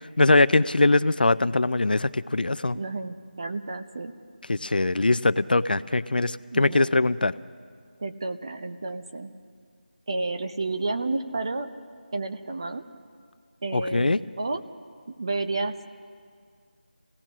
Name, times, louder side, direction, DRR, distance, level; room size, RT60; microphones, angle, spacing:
voice 1, 0.2-2.8 4.5-7.3 13.7-14.2, left 2 dB, 65° left, 16 dB, 0.6 m, -22 dB
voice 2, 2.7-4.1 6.5-6.9 8.0-9.3 10.1-11.7 12.1-12.8 13.6-14.6 15.2-15.8, right 3 dB, 30° right, 8 dB, 0.8 m, -31 dB
27.5 x 17.5 x 6.2 m, 2.1 s
figure-of-eight pair, 175°, 5 cm